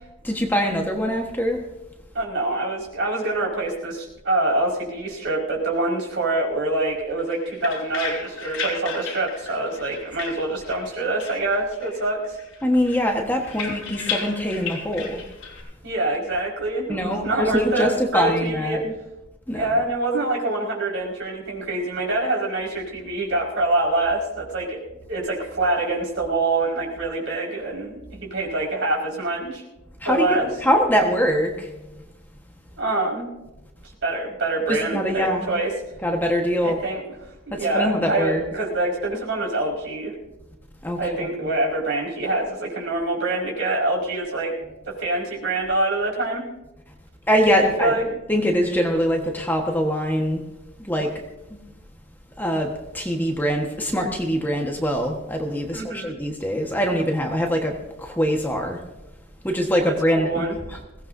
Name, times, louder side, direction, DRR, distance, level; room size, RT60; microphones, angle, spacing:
voice 1, 0.2-1.6 12.6-15.2 16.9-18.9 19.5-19.7 30.0-31.7 34.7-35.5 36.0-36.8 37.5-38.4 40.8-41.0 47.3-48.0 48.3-50.4 50.8-51.1 51.5-51.6 52.4-58.8 59.4-60.8, equal, 10° left, 2 dB, 1.4 m, -23 dB
voice 2, 2.1-12.4 15.8-18.8 19.5-24.8 25.1-29.6 30.0-30.5 32.8-33.3 34.0-35.7 36.6-37.0 37.5-40.1 41.0-44.5 44.8-46.4 47.6-48.0 55.7-56.1 60.2-60.5, right 2 dB, 60° right, -3 dB, 5.2 m, -25 dB
sound 1, 7.2-10.9 11.2-12.1 12.4-15.6, left 5 dB, 65° left, 6.2 m, -34 dB
21.5 x 17.5 x 2.7 m, 1.0 s
head